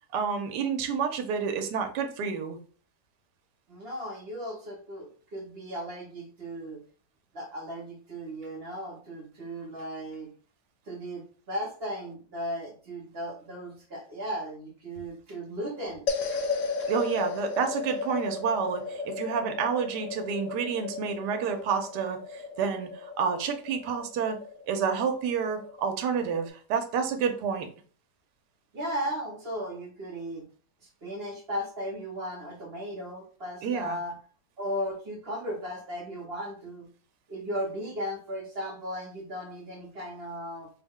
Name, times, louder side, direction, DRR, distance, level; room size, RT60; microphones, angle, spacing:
voice 1, 0.1-2.6 16.9-24.4 24.7-27.7 33.6-34.0, right 6 dB, 75° right, 6 dB, 1.2 m, -29 dB
voice 2, 3.7-6.8 7.3-10.3 10.9-16.4 28.7-30.5 31.0-34.2 34.6-36.9 37.3-40.7, equal, 45° right, 0 dB, 0.8 m, -36 dB
sound 1, 16.1-26.5, left 4 dB, 65° left, 0.8 m, -35 dB
4.5 x 2.1 x 3.5 m, 0.42 s
omnidirectional pair, 1.9 m